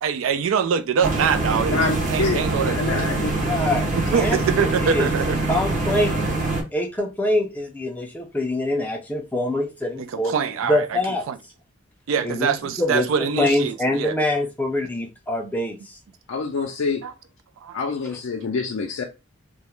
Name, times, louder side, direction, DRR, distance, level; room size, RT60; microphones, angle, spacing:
voice 1, 0.0-3.1 3.9-5.4 10.0-11.0 11.3-11.4 12.1-14.2 17.0-17.1 17.6-17.8, right 6 dB, 85° right, 0.4 m, -24 dB
sound 1, 1.0-6.6, right 2 dB, 40° right, 0.6 m, -24 dB
voice 2, 1.7-3.3 16.3-17.0 17.7-19.0, left 4 dB, 80° left, 0.4 m, -26 dB
voice 3, 3.4-5.1 5.5-6.2 6.7-10.3 10.7-11.2 12.2-12.5 12.8-13.1 13.4-15.8, left 1 dB, 10° left, 0.4 m, -24 dB
2.2 x 2.0 x 2.9 m
head